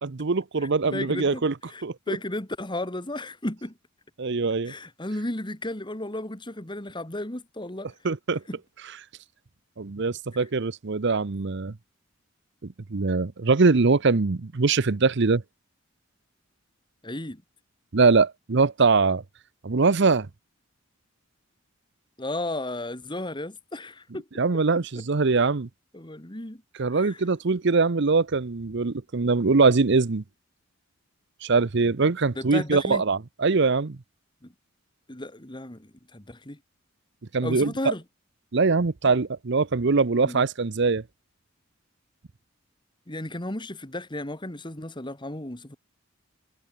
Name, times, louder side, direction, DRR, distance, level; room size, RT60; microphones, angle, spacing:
voice 1, 0.0-1.5 1.8-2.2 4.2-4.7 8.0-8.4 9.8-11.7 12.6-15.4 17.9-19.2 19.6-20.3 24.4-25.7 26.8-30.2 31.4-34.0 37.3-37.7 38.5-41.0, right 4 dB, 60° right, 0.7 m, -22 dB
voice 2, 0.9-3.8 4.6-7.9 8.5-8.6 10.3-10.5 17.0-17.4 22.2-24.3 25.9-26.6 26.9-27.2 32.4-33.0 34.4-34.5 35.1-36.6 37.4-38.0 40.2-40.5 43.1-45.8, left 1 dB, 25° left, 2.2 m, -34 dB
head